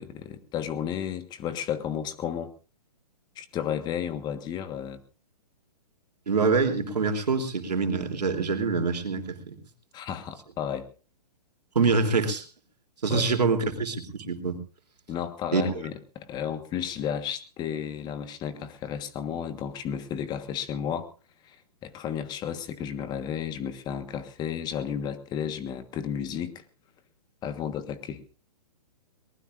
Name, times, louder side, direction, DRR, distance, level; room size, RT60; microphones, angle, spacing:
voice 1, 0.0-2.5 3.4-5.0 9.9-10.9 13.1-13.3 15.1-21.1 21.4-21.6 21.8-26.6 27.4-28.2, left 9 dB, 20° left, 11 dB, 1.4 m, -33 dB
voice 2, 6.3-9.5 11.7-12.4 13.0-14.6 15.5-15.7, right 4 dB, 85° right, 4 dB, 3.3 m, -25 dB
22.5 x 19.5 x 2.6 m, 0.36 s
hypercardioid pair, 140°, 20 cm